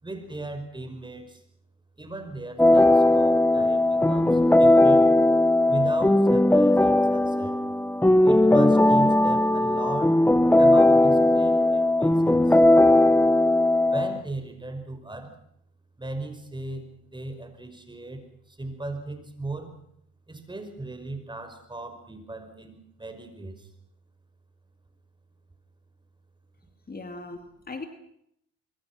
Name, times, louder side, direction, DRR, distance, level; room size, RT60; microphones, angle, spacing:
voice 1, 0.0-1.4 2.0-5.1 5.7-7.6 8.2-10.2 10.5-12.6 13.9-15.3 16.0-19.7 20.3-23.7, right 2 dB, 15° right, 7 dB, 5.5 m, -36 dB
sound 1, 2.6-14.2, left 1 dB, 5° left, 0.8 m, -18 dB
voice 2, 26.9-27.9, left 3 dB, 30° left, 6 dB, 2.5 m, -38 dB
24.0 x 24.0 x 6.1 m, 0.74 s
cardioid pair, 90°, 30 cm